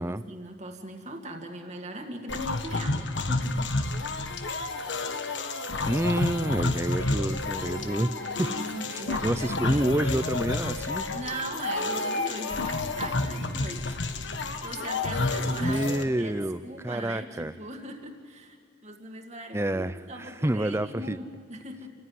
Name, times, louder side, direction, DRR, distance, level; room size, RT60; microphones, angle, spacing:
voice 1, 0.0-3.7 7.9-9.8 11.1-21.9, right 1 dB, 35° right, 3 dB, 2.1 m, -40 dB
sound 1, 2.3-16.0, left 2 dB, 70° left, 1.4 m, -30 dB
voice 2, 5.9-8.1 8.4-8.5 8.9-11.1 15.5-17.5 19.5-20.0 20.4-21.2, right 1 dB, 15° right, 14 dB, 0.6 m, -28 dB
28.5 x 15.5 x 9.5 m, 2.3 s
head